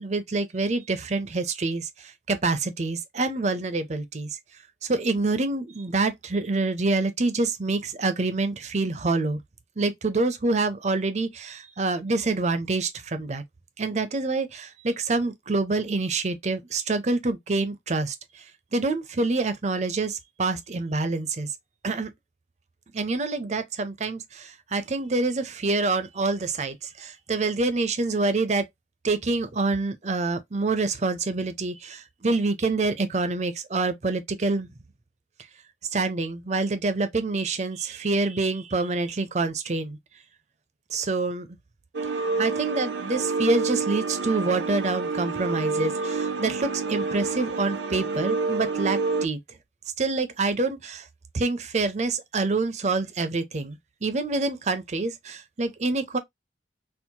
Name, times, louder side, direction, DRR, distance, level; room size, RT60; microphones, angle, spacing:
voice 1, 0.0-4.4 4.8-9.4 9.8-13.4 13.8-18.4 18.7-21.5 21.8-22.1 22.9-28.7 29.0-34.7 35.9-40.0 40.9-41.5 42.4-49.4 50.0-51.1 51.3-56.2, right 3 dB, 40° right, 0.5 m, -26 dB
sound 1, 41.9-49.3, right 4 dB, 85° right, 0.6 m, -28 dB
4.4 x 2.0 x 2.8 m
head